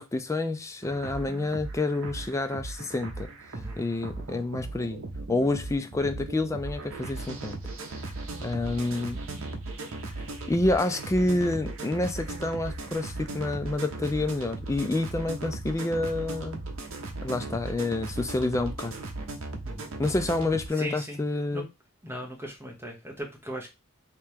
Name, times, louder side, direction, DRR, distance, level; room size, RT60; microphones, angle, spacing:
voice 1, 0.0-3.3 3.8-5.0 5.3-7.6 8.0-8.1 8.4-9.2 10.5-16.6 17.2-18.9 20.0-21.7, left 2 dB, 15° left, 0.3 m, -28 dB
sound 1, 0.8-20.7, right 2 dB, 65° right, 0.8 m, -37 dB
voice 2, 19.6-20.0 20.7-21.2 21.5-21.6 22.0-23.7, equal, 10° right, 1.0 m, -38 dB
3.3 x 3.0 x 3.4 m
head